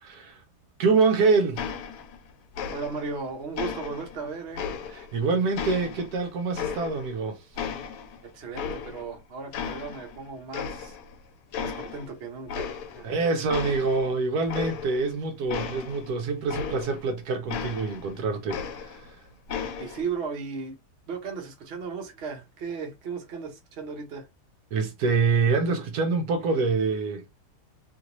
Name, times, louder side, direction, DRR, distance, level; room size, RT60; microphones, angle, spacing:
voice 1, 0.0-0.4 0.8-1.7 4.9-7.4 13.0-19.2 24.7-27.2, right 4 dB, 75° right, 1.1 m, -25 dB
sound 1, 1.6-2.3 2.5-3.2 3.6-5.2 5.6-7.2 7.6-9.2 9.5-10.2 10.5-11.2 11.5-12.1 12.5-13.1 13.5-17.1 17.5-19.1 19.5-20.1, left 7 dB, 80° left, 1.1 m, -35 dB
voice 2, 2.7-4.6 8.2-10.9 11.6-13.1 19.8-20.8 21.1-24.3, right 5 dB, 50° right, 1.0 m, -36 dB
3.0 x 2.6 x 2.9 m
omnidirectional pair, 1.7 m